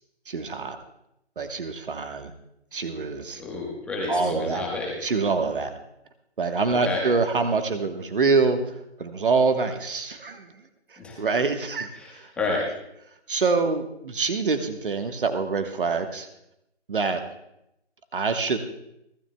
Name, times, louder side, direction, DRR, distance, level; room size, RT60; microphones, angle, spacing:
voice 1, 0.3-0.8 1.4-2.3 2.7-3.4 4.1-4.6 5.0-5.7 6.4-8.6 9.0-10.5 11.2-11.9 13.3-16.3 16.9-17.2 18.1-18.6, right 4 dB, 50° right, 7 dB, 1.4 m, -25 dB
voice 2, 3.3-5.0 6.7-7.0 11.0-11.2 11.9-12.7, left 3 dB, 5° left, -3 dB, 1.3 m, -30 dB
30.0 x 13.0 x 2.3 m, 0.82 s
figure-of-eight pair, 150°, 33 cm